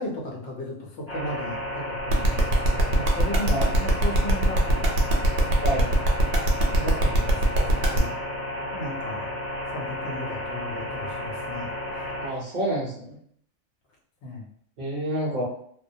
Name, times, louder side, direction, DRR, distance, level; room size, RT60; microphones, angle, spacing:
voice 1, 0.0-4.8 5.4-5.9 6.7-8.2 8.7-9.3 9.7-12.0 14.2-14.5, left 1 dB, 70° left, 0 dB, 0.9 m, -35 dB
sound 1, 1.1-12.3, left 1 dB, 10° left, 0.9 m, -32 dB
sound 2, 2.1-8.0, right 1 dB, 85° right, 0.9 m, -22 dB
voice 2, 12.2-13.2 14.8-15.4, right 1 dB, 55° right, -6 dB, 0.8 m, -28 dB
2.2 x 2.1 x 2.6 m, 0.63 s
omnidirectional pair, 1.2 m